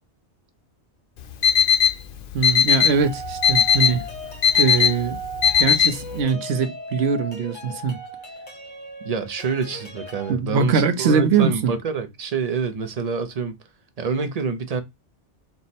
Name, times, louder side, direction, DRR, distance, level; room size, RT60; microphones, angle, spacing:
Alarm, 1.2-6.2, left 8 dB, 60° left, 0.6 m, -19 dB
voice 1, 2.3-4.0 4.6-5.2 5.6-8.0 10.3-11.7, right 5 dB, 70° right, 0.9 m, -22 dB
sound 1, 2.9-10.3, right 1 dB, 45° left, 1.3 m, -37 dB
voice 2, 9.0-13.5 14.0-14.8, right 5 dB, 50° right, 0.5 m, -27 dB
4.5 x 2.1 x 4.0 m
omnidirectional pair, 1.2 m